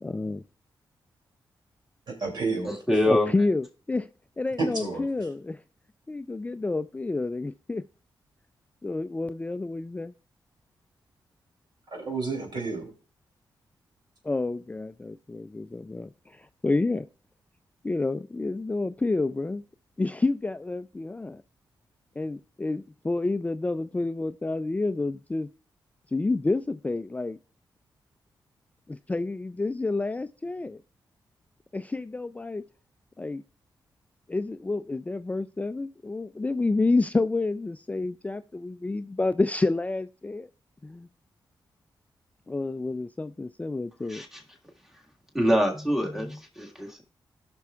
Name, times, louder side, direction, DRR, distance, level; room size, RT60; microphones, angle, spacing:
voice 1, 0.0-0.4 3.1-4.1 4.4-5.6 6.1-7.8 8.8-10.1 14.2-17.1 17.8-19.6 20.0-21.4 22.2-25.5 26.1-27.4 28.9-30.8 31.7-32.6 33.2-33.4 34.3-40.5 40.8-41.1 42.5-44.2, left 3 dB, 15° left, 0.3 m, -29 dB
voice 2, 2.1-2.7 4.6-5.1 11.9-12.9, right 3 dB, 60° right, 2.7 m, -30 dB
voice 3, 2.6-3.3 44.1-44.4 45.3-47.0, equal, 5° right, 1.7 m, -25 dB
17.5 x 6.0 x 2.3 m
cardioid pair, 70°, 8 cm